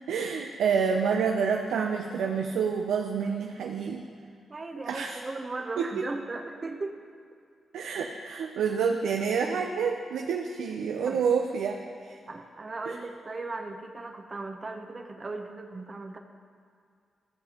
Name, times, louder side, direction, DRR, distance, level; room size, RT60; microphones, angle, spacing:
voice 1, 0.1-4.0 4.9-5.2 5.8-5.9 7.7-11.8 12.0-12.2 12.9-13.0, right 6 dB, 90° right, 3 dB, 0.4 m, -28 dB
voice 2, 4.5-7.0 11.1-11.2 12.3-16.2, right 3 dB, 35° right, 4 dB, 0.7 m, -37 dB
14.0 x 7.5 x 2.9 m, 2.3 s
cardioid pair, 75°, 0 cm